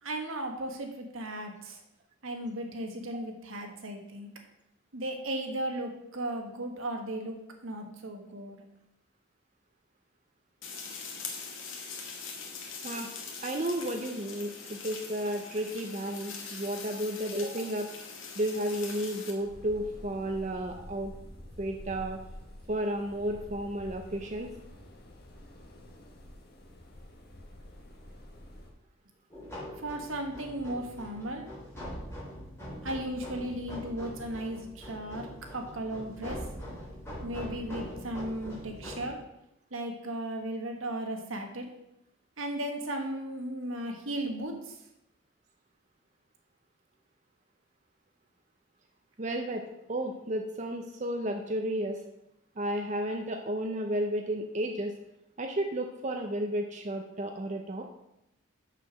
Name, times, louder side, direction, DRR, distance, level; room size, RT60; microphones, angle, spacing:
voice 1, 0.0-1.8 2.2-4.3 4.9-7.4 7.6-8.6 29.8-31.5 32.8-36.4 37.2-39.2 39.7-41.7 42.4-44.8, right 1 dB, 75° right, 3 dB, 1.4 m, -36 dB
sound 1, 10.6-19.3, left 5 dB, 70° left, 1.7 m, -42 dB
voice 2, 12.8-13.1 13.4-17.9 18.3-21.1 21.6-22.2 22.7-24.5 49.2-49.6 49.9-52.0 52.6-54.9 55.4-57.9, right 1 dB, 35° right, 3 dB, 0.7 m, -32 dB
sound 2, 19.4-28.7, left 1 dB, 50° left, 1.3 m, -48 dB
sound 3, 29.3-39.1, equal, 15° left, 4.0 m, -42 dB
6.7 x 6.6 x 6.2 m, 0.84 s
head